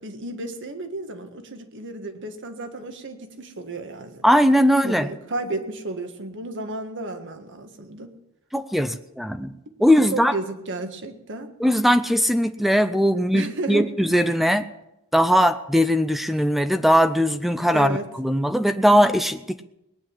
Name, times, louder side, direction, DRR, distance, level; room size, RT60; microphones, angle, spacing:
voice 1, 0.0-4.2 4.8-8.1 10.1-11.5 13.1-13.9 17.7-18.1, right 2 dB, 60° right, 7 dB, 1.7 m, -33 dB
voice 2, 4.2-5.1 8.5-9.5 9.8-10.3 11.6-14.7 15.1-19.6, equal, ahead, 11 dB, 0.5 m, -19 dB
19.5 x 9.9 x 7.3 m, 0.87 s
head